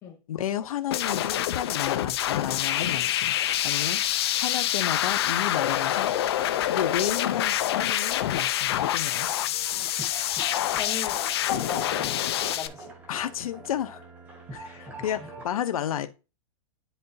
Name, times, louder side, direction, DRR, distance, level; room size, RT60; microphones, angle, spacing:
voice 1, 0.3-3.3 3.6-4.0 4.4-6.1 6.6-9.3 13.1-14.1 14.5-16.1, left 10 dB, 85° left, 0.7 m, -32 dB
sound 1, 0.9-12.7, left 12 dB, 45° left, 0.5 m, -26 dB
sound 2, 9.1-15.5, right 2 dB, 10° right, 0.8 m, -44 dB
voice 2, 10.8-12.9 14.7-14.9, left 8 dB, 15° left, 1.1 m, -36 dB
10.0 x 3.9 x 2.7 m
supercardioid pair, 175°, 18 cm